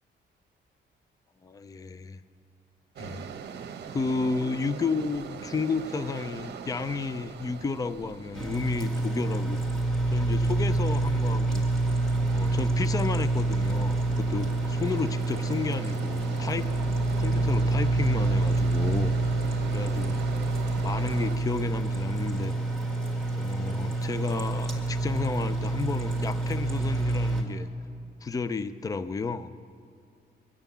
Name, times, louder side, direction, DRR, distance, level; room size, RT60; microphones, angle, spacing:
voice 1, 1.4-2.2 3.0-3.2 3.9-9.6 10.1-11.6 12.3-16.7 17.2-19.1 19.7-20.2 20.8-22.5 23.3-27.7 28.2-29.5, left 4 dB, 20° left, 14 dB, 0.4 m, -32 dB
sound 1, 3.0-21.4, right 7 dB, 65° right, 0.9 m, -42 dB
sound 2, 8.3-27.4, right 2 dB, 5° left, 1.9 m, -27 dB
23.0 x 9.1 x 7.0 m, 2.4 s
wide cardioid pair, 155°, 19 cm